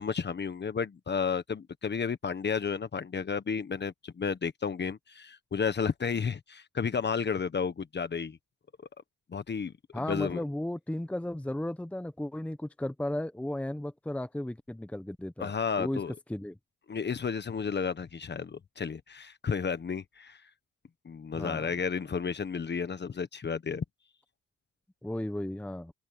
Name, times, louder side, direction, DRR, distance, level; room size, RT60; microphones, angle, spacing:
voice 1, 0.0-8.4 9.3-10.4 15.4-16.1 16.9-20.4 21.0-23.8, left 6 dB, 35° left, 1.4 m, -32 dB
voice 2, 9.9-15.5 15.8-16.0 16.3-16.6 21.3-21.7 25.0-25.9, left 1 dB, 5° left, 1.0 m, -35 dB
cardioid pair, 90°, 30 cm